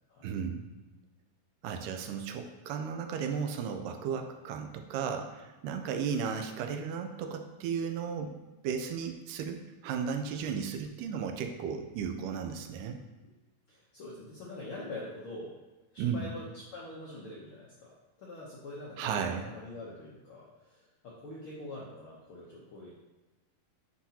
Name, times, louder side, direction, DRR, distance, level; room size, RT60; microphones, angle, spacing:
voice 1, 0.2-0.7 1.6-8.4 8.6-13.0 16.0-16.3 19.0-19.5, right 6 dB, 85° right, 5 dB, 2.2 m, -35 dB
voice 2, 13.7-15.6 15.9-22.9, left 2 dB, 75° left, -5 dB, 1.2 m, -45 dB
9.6 x 3.9 x 2.8 m, 1.2 s
omnidirectional pair, 3.7 m